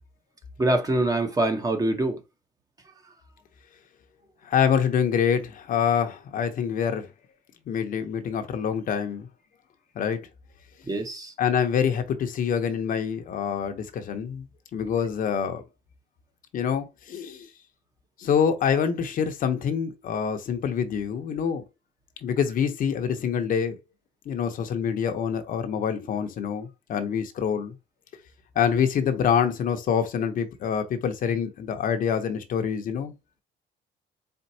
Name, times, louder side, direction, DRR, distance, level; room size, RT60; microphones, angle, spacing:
voice 1, 0.6-2.2 2.9-3.0 10.9-11.3, right 2 dB, 20° right, 0.9 m, -24 dB
voice 2, 4.4-7.1 7.7-9.3 10.0-10.2 11.4-14.4 14.7-15.6 16.5-17.5 18.2-21.6 22.2-23.8 24.3-27.7 28.6-33.1, left 7 dB, 55° left, 0.8 m, -26 dB
4.4 x 3.9 x 2.7 m
cardioid pair, 110°, 17 cm